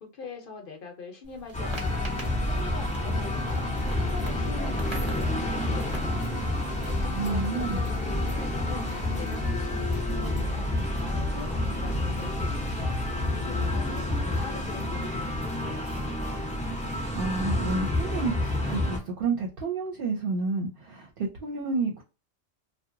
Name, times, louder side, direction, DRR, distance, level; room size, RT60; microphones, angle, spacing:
voice 1, 0.0-2.1 2.4-3.7 3.9-6.1 6.9-8.0 8.3-8.9 9.1-10.7 11.0-13.0 13.3-16.0, left 4 dB, 55° left, 0.8 m, -43 dB
sound 1, 1.2-17.6, right 1 dB, 30° right, 0.8 m, -47 dB
sound 2, 1.5-19.0, left 1 dB, 10° left, 0.5 m, -29 dB
Bowed string instrument, 1.6-10.0, left 10 dB, 85° left, 0.9 m, -44 dB
voice 2, 7.1-7.8 17.1-22.0, right 4 dB, 60° right, 0.7 m, -30 dB
2.8 x 2.1 x 2.5 m
omnidirectional pair, 1.2 m